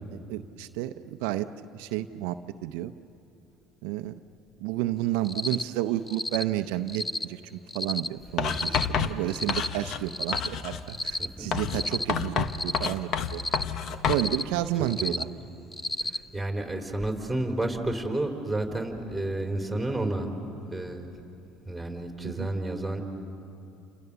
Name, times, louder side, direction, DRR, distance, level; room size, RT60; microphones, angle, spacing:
voice 1, 0.3-1.5 1.7-2.9 3.8-4.1 4.6-7.4 7.7-13.4 14.1-15.3 22.2-22.5, right 14 dB, 80° right, 8 dB, 0.6 m, -31 dB
Cricket, 5.2-5.6 6.1-6.4 6.9-7.3 7.7-8.1 8.5-8.9 9.3-9.7 10.1-10.5 10.9-11.3 11.7-12.1 12.5-12.9 13.3-13.6 14.1-14.4 14.9-15.2 15.7-16.2, left 2 dB, 15° left, 0.7 m, -31 dB
Writing, 8.4-10.1 10.3-10.9 11.5-14.3, left 7 dB, 55° left, 1.2 m, -29 dB
voice 2, 11.2-11.5 14.8-15.2 16.0-20.3 20.7-21.1 21.7-23.0, right 2 dB, ahead, 3 dB, 4.1 m, -31 dB
29.5 x 27.5 x 7.0 m, 2.7 s
supercardioid pair, 85°, 0 cm